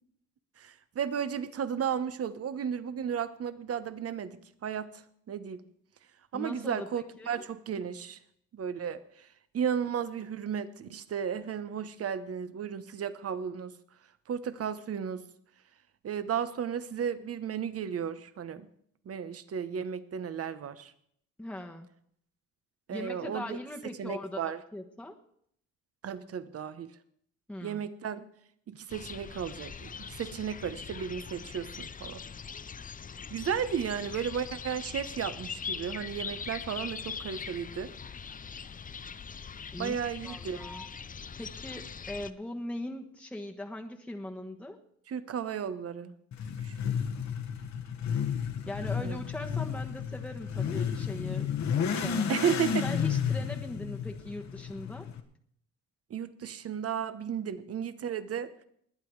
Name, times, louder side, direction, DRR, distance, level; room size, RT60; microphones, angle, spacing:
voice 1, 0.6-5.6 6.3-8.2 8.5-9.3 9.5-13.7 14.3-15.2 16.0-18.7 19.0-20.9 22.9-23.6 24.0-24.6 26.0-26.9 27.6-28.2 28.7-32.2 33.3-37.9 39.8-40.6 45.1-46.1 46.6-46.8 49.0-49.2 52.3-52.9 56.1-58.5, right 8 dB, 50° right, 13 dB, 1.1 m, -34 dB
voice 2, 6.3-7.4 21.4-21.9 22.9-25.1 27.5-27.8 39.7-40.0 40.2-40.9 41.4-44.8 48.7-51.5 51.8-52.3 52.8-55.1, left 1 dB, 5° left, 2 dB, 1.3 m, -40 dB
sound 1, 28.9-42.3, left 6 dB, 25° left, 0.6 m, -41 dB
Motorcycle / Accelerating revving vroom, 46.3-55.2, left 7 dB, 65° left, 1.6 m, -32 dB
20.5 x 8.7 x 4.8 m, 0.67 s
cardioid pair, 90°, 30 cm